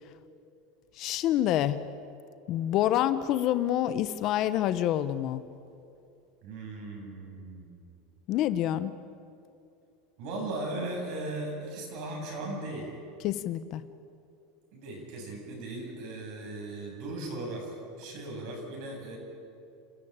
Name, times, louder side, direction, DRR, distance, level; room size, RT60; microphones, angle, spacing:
voice 1, 1.0-1.8 2.5-5.4 8.3-8.9 13.2-13.8, left 12 dB, 45° left, 14 dB, 0.9 m, -27 dB
voice 2, 6.4-7.9 10.2-12.9 14.7-19.2, right 2 dB, 55° right, 1 dB, 7.6 m, -37 dB
29.0 x 14.0 x 8.8 m, 2.6 s
supercardioid pair, 135°, 0 cm